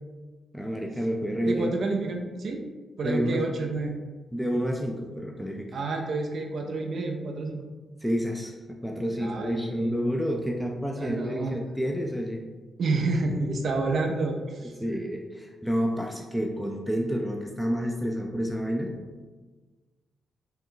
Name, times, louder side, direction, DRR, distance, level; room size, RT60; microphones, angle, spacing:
voice 1, 0.5-1.7 3.0-3.5 4.3-5.7 8.0-12.4 14.8-18.9, equal, ahead, 0 dB, 0.5 m, -29 dB
voice 2, 1.5-2.6 3.0-4.0 5.7-7.6 9.2-10.0 11.0-11.6 12.8-15.0, right 3 dB, 65° right, 2 dB, 0.4 m, -29 dB
3.9 x 2.2 x 3.7 m, 1.3 s
supercardioid pair, 50°, 0 cm